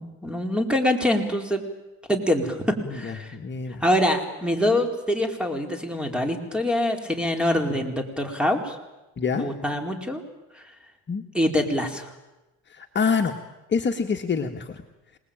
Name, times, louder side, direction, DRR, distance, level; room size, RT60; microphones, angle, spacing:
voice 1, 0.0-1.6 2.1-3.4 3.8-8.8 9.3-10.2 10.5-10.7 11.3-12.1, left 1 dB, 5° right, 5 dB, 4.5 m, -25 dB
voice 2, 2.9-3.8 9.2-9.5 11.1-11.2 12.7-13.3 13.7-14.8, left 5 dB, 35° left, 3 dB, 1.9 m, -26 dB
27.0 x 20.0 x 9.0 m, 1.0 s
cardioid pair, 95°, 31 cm